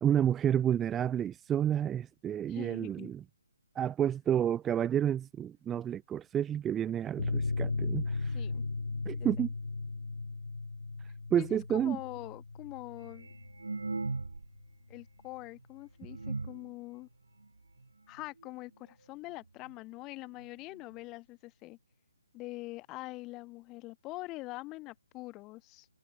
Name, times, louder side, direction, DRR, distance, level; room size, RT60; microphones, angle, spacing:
voice 1, 0.0-3.2 3.7-8.4 9.0-9.5 11.3-12.0, right 9 dB, 10° right, 1.0 m, -30 dB
voice 2, 2.5-3.1 8.3-8.6 9.2-9.3 11.4-13.3 14.9-17.1 18.1-21.8 22.3-25.9, left 21 dB, 15° left, 2.0 m, -44 dB
sound 1, 7.2-14.3 14.5-14.7 15.0-15.1, left 3 dB, 85° left, 0.7 m, -36 dB
sound 2, 13.0-14.6 14.9-15.0 15.6-15.7 16.0-16.7 17.4-17.5 17.8-17.9 18.2-18.5 19.3-19.4 19.7-19.8 20.4-20.5 20.8-20.9, right 3 dB, 90° right, 0.8 m, -38 dB
hypercardioid pair, 160°, 0 cm